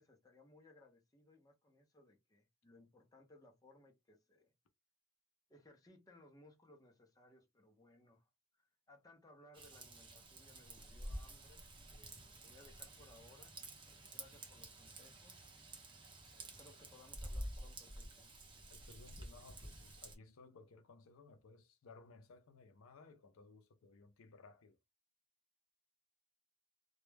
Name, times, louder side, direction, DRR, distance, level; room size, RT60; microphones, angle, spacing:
voice 1, 0.0-4.5 5.5-8.3 8.6-11.6 11.9-13.6 13.9-15.4 16.3-18.4, left 2 dB, 15° left, 0.5 m, -64 dB
Raindrop / Vehicle horn car horn honking / Trickle dribble, 9.5-20.1, right 1 dB, 25° right, 0.7 m, -50 dB
voice 2, 18.7-24.8, left 3 dB, 75° left, 0.5 m, -60 dB
2.2 x 2.1 x 3.2 m
head